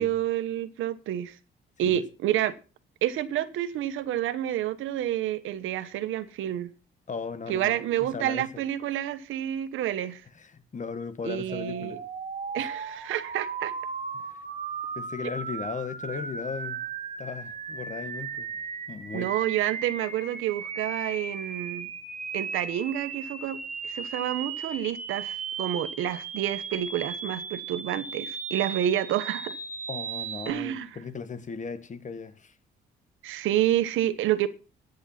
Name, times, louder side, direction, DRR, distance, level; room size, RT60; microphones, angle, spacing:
voice 1, 0.0-1.4 1.8-2.6 3.0-6.7 7.5-10.2 11.2-12.0 12.5-13.7 19.1-21.9 22.3-23.6 23.8-29.6 30.5-30.9 33.2-34.5, right 12 dB, 85° right, 1.2 m, -29 dB
voice 2, 7.1-8.5 10.3-12.0 12.6-12.7 14.1-14.4 14.9-16.8 17.2-18.6 18.9-19.3 29.9-32.6, left 5 dB, 40° left, 1.6 m, -37 dB
sound 1, 11.5-30.5, right 5 dB, 40° right, 2.3 m, -36 dB
10.0 x 9.7 x 5.8 m
cardioid pair, 90°, 20 cm